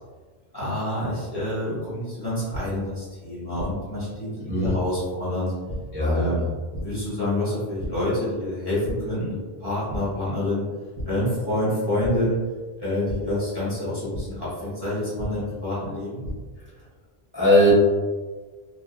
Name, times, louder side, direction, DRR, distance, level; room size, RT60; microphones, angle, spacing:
voice 1, 0.5-5.5 6.1-6.4 6.7-10.6 11.1-12.4 12.8-16.2, left 1 dB, 25° left, -11 dB, 1.2 m, -27 dB
sound 1, 2.5-2.6 3.6-3.7 4.6-4.7 5.7-5.8 6.7-6.8 7.8-7.9 8.3-8.5 8.8-8.9 9.9-10.0 10.9-11.1 12.0-12.1 13.1-13.2 14.1-14.2 15.2-15.3 16.0-16.3, right 1 dB, 50° right, 0.6 m, -32 dB
voice 2, 5.9-6.5 17.3-17.7, equal, 10° right, -11 dB, 0.9 m, -19 dB
2.6 x 2.5 x 2.3 m, 1.4 s
omnidirectional pair, 1.1 m